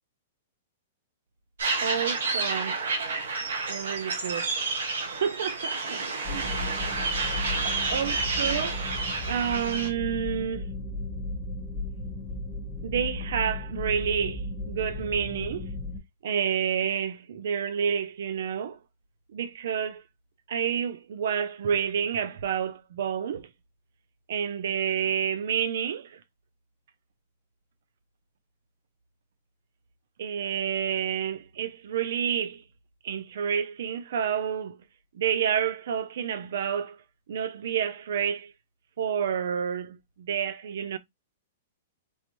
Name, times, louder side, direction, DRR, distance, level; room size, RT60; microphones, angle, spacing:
sound 1, 1.6-9.9, right 3 dB, 90° right, 1.4 m, -30 dB
voice 1, 1.8-2.8 3.7-4.6 5.2-6.5 7.9-8.8 9.3-10.7 12.8-15.7 16.2-18.8 19.3-20.0 20.5-23.5 24.3-26.2 30.2-32.6 33.0-34.8 35.1-37.0 37.3-38.5 39.0-41.0, right 8 dB, 70° right, 0.5 m, -29 dB
sound 2, 6.2-16.0, left 2 dB, 15° left, 1.0 m, -35 dB
4.6 x 2.5 x 3.0 m
hypercardioid pair, 150°, 0 cm